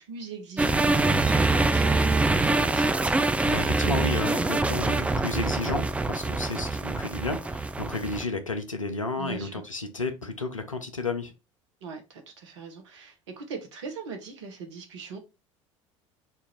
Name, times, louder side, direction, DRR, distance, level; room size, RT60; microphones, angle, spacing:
voice 1, 0.0-2.9 9.2-9.6 11.8-15.2, right 5 dB, 65° right, 1.1 m, -40 dB
sound 1, 0.6-8.2, right 3 dB, 10° right, 0.3 m, -24 dB
voice 2, 3.4-11.3, left 3 dB, 90° left, 0.6 m, -32 dB
3.6 x 2.5 x 4.3 m
figure-of-eight pair, 70°, 16 cm